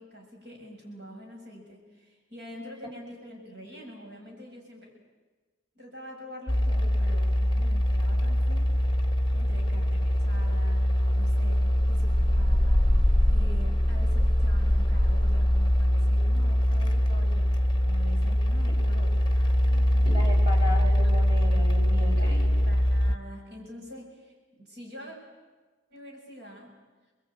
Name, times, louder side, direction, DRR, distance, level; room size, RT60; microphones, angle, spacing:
voice 1, 0.0-4.9 5.8-8.7 9.3-20.2 21.0-21.2 22.2-25.2 25.9-26.7, equal, 55° right, -1 dB, 7.0 m, -45 dB
sound 1, 6.5-23.2, equal, 25° left, 1.1 m, -23 dB
voice 2, 18.7-19.1 20.1-22.6, left 1 dB, 25° right, -1 dB, 5.9 m, -36 dB
28.5 x 21.5 x 9.0 m, 1.3 s
head